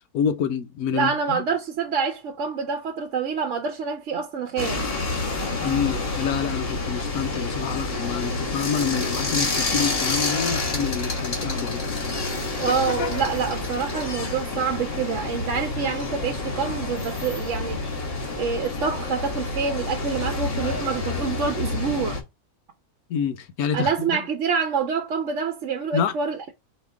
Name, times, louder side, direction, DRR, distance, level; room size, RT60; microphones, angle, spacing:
voice 1, 0.1-1.4 5.6-11.8 23.1-24.2 25.9-26.1, left 7 dB, 85° left, 1.2 m, -27 dB
voice 2, 0.9-4.8 12.5-17.8 18.4-22.2 23.7-26.5, right 6 dB, 60° right, 0.9 m, -27 dB
sound 1, 4.6-22.2, left 3 dB, 40° left, 1.7 m, -28 dB
5.3 x 2.9 x 3.4 m
omnidirectional pair, 1.6 m